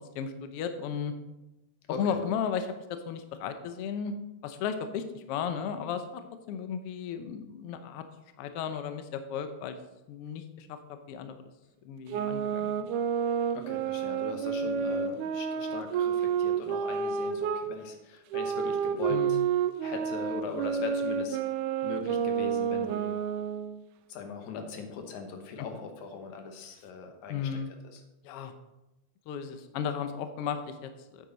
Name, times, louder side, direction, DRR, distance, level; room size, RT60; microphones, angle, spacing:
voice 1, 0.1-1.1 2.0-4.1 4.4-6.2 6.5-8.0 8.4-9.8 10.1-11.4 11.8-12.9 19.1-19.5 27.3-27.7 28.2-28.5 29.3-31.3, left 7 dB, 90° left, 8 dB, 1.3 m, -35 dB
voice 2, 1.9-2.2 13.5-19.4 19.8-21.4 21.8-23.1 24.1-27.6 27.9-28.0, left 5 dB, 70° left, 5 dB, 2.4 m, -40 dB
sound 1, 12.1-17.7 18.3-23.8, right 7 dB, 80° right, 2.1 m, -30 dB
9.2 x 8.5 x 4.0 m, 0.97 s
omnidirectional pair, 3.6 m